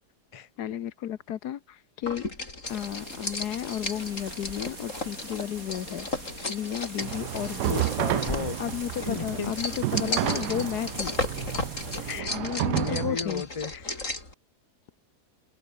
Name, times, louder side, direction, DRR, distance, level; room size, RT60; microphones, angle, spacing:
voice 1, 0.6-2.2 2.7-7.9 8.6-11.2 12.3-13.5, left 10 dB, 75° left, 1.4 m, -33 dB
sound 1, 2.0-14.3, left 2 dB, 50° left, 5.2 m, -35 dB
sound 2, 2.6-12.2, right 2 dB, 55° right, 6.7 m, -43 dB
sound 3, 7.0-13.2, right 16 dB, 80° right, 1.2 m, -31 dB
voice 2, 8.0-8.7 9.0-9.6 12.0-12.4 12.7-13.9, left 5 dB, 25° left, 1.0 m, -34 dB
omnidirectional pair, 1.8 m